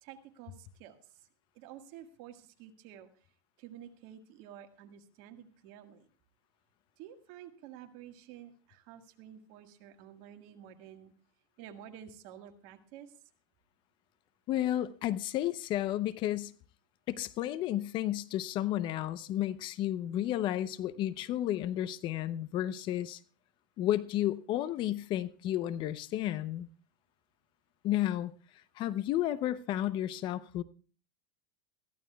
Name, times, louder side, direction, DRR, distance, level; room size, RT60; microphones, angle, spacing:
voice 1, 0.0-1.3 1.6-3.1 3.6-6.1 7.0-11.1 11.6-13.2, right 10 dB, 60° right, 1.7 m, -51 dB
voice 2, 14.5-16.5 17.1-23.2 23.8-26.7 27.8-28.3 28.8-30.6, left 13 dB, 45° left, 0.7 m, -32 dB
21.0 x 14.0 x 2.3 m
hypercardioid pair, 110°, 11 cm